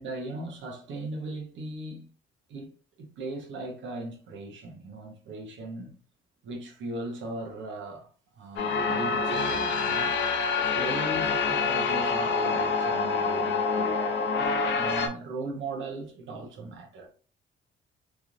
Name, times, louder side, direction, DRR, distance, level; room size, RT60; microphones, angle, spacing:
voice 1, 0.0-2.1 2.5-2.7 3.0-5.9 6.4-13.9 14.7-17.1, right 2 dB, 75° right, 1.1 m, -38 dB
sound 1, 8.6-15.1, left 4 dB, 65° left, 0.8 m, -26 dB
3.5 x 3.1 x 2.5 m
cardioid pair, 90°, 20 cm